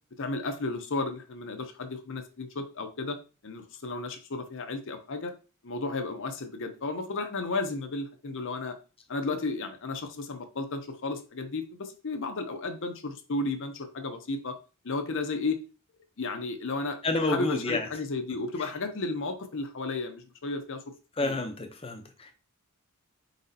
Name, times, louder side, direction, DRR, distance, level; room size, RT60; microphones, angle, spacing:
voice 1, 0.2-3.2 3.4-5.3 5.6-8.8 9.1-14.6 14.8-15.6 16.2-20.8 21.2-21.4, left 3 dB, 60° left, 7 dB, 0.7 m, -33 dB
voice 2, 17.0-17.9 21.2-22.3, left 2 dB, 25° left, 5 dB, 0.7 m, -29 dB
4.1 x 4.0 x 2.7 m, 0.33 s
head